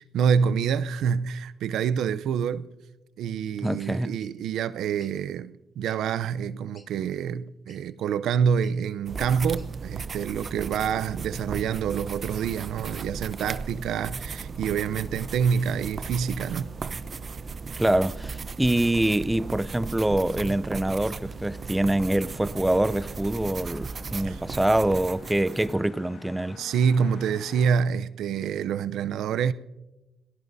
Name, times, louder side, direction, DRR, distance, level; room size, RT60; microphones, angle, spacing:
voice 1, 0.0-2.7 3.2-16.7 24.3-24.4 26.6-29.5, right 7 dB, 75° right, 0.6 m, -27 dB
voice 2, 3.6-4.2 17.8-26.6, right 1 dB, 10° right, 0.5 m, -25 dB
sound 1, 4.2-4.3 5.0-5.1 5.8-6.0 6.5-6.6 6.7-6.9 7.7-7.8 8.6-8.8 9.6-9.7 10.4-10.6, left 3 dB, 40° left, 3.7 m, -55 dB
sound 2, 9.1-25.7, right 4 dB, 40° right, 0.7 m, -36 dB
sound 3, 14.7-27.7, left 5 dB, 60° left, 1.7 m, -52 dB
27.0 x 19.0 x 2.7 m
cardioid pair, 80°, 0 cm